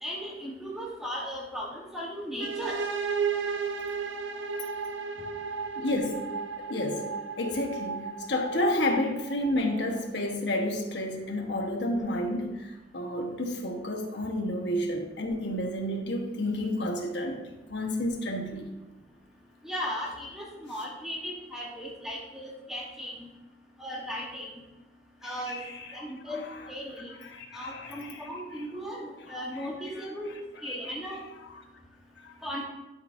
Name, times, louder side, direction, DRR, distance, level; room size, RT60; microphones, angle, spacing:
voice 1, 0.0-2.8 19.6-23.3 23.8-24.5 25.2-25.6 25.9-26.4 26.7-27.1 27.5-30.4 30.6-31.2 32.4-32.6, equal, ahead, -3 dB, 1.1 m, -36 dB
sound 1, 2.4-10.1, right 5 dB, 75° right, 0.6 m, -34 dB
voice 2, 5.8-18.7 25.2-26.0 26.3-26.7 27.2-28.3 29.3-29.4 30.0-30.1 30.6-30.9 32.2-32.3, left 1 dB, 70° left, 2 dB, 1.2 m, -31 dB
12.0 x 5.3 x 2.6 m, 1.0 s
head